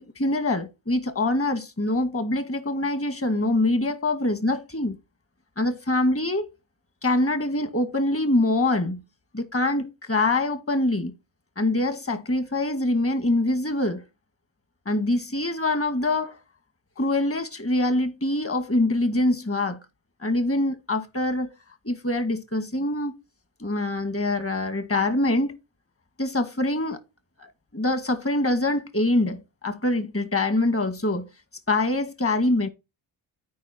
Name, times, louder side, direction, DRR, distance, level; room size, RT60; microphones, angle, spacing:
voice 1, 0.0-5.0 5.6-6.5 7.0-9.0 9.3-11.1 11.6-14.0 14.9-16.4 17.0-19.8 20.2-21.5 21.8-23.1 23.6-25.5 26.2-27.0 27.4-31.3 31.7-32.7, left 2 dB, 25° left, 2.0 m, -24 dB
9.4 x 4.7 x 4.5 m
supercardioid pair, 55°, 49 cm